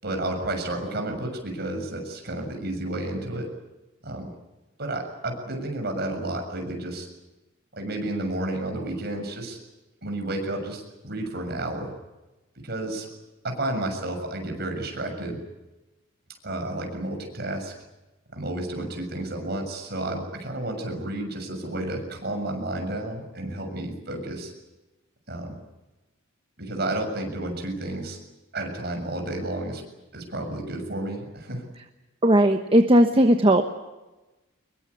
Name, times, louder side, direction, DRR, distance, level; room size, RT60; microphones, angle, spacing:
voice 1, 0.0-3.5 4.0-4.3 4.8-7.1 7.7-9.6 10.0-11.9 12.6-13.1 13.4-15.4 16.4-17.7 18.3-24.5 25.3-25.6 26.6-28.2 28.5-29.8 30.1-31.6, right 1 dB, 50° right, 4 dB, 7.0 m, -31 dB
voice 2, 32.2-33.6, right 1 dB, 25° right, 5 dB, 1.2 m, -17 dB
25.0 x 22.0 x 8.5 m, 1.1 s
head